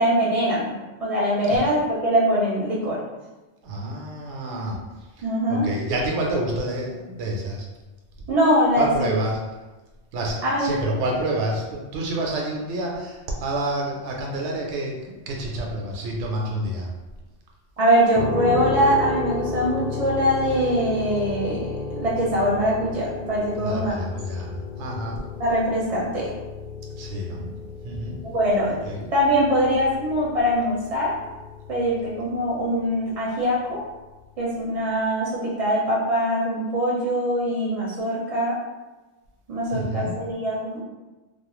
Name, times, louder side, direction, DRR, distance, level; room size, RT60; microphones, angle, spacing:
voice 1, 0.0-3.0 5.2-5.7 8.3-9.1 10.4-10.7 17.8-24.0 25.4-26.3 28.2-28.7 29.1-31.1 31.7-33.8 34.4-38.6 39.5-40.8, equal, 50° right, -6 dB, 0.4 m, -22 dB
voice 2, 3.6-4.8 5.5-7.7 8.8-9.4 10.1-16.9 23.6-25.2 26.9-27.5 27.8-28.2 28.7-29.1 39.7-40.2, right 1 dB, 80° right, -1 dB, 0.9 m, -28 dB
sound 1, 18.1-32.8, left 3 dB, 40° left, 0.8 m, -33 dB
2.4 x 2.1 x 2.9 m, 1.2 s
omnidirectional pair, 1.2 m